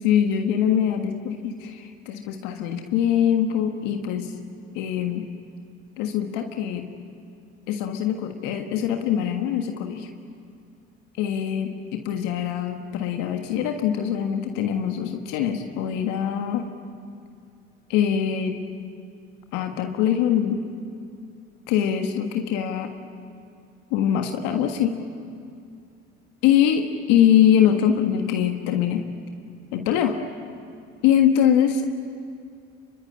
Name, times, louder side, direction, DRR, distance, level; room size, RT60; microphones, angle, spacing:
voice 1, 0.0-4.3 4.8-5.3 6.0-6.9 7.7-10.1 11.2-16.7 17.9-18.6 19.5-20.6 21.7-22.9 23.9-25.0 26.4-29.0 29.7-30.1 31.0-31.9, left 9 dB, 80° left, 4 dB, 1.6 m, -23 dB
25.0 x 23.5 x 9.9 m, 2.4 s
hypercardioid pair, 60°, 31 cm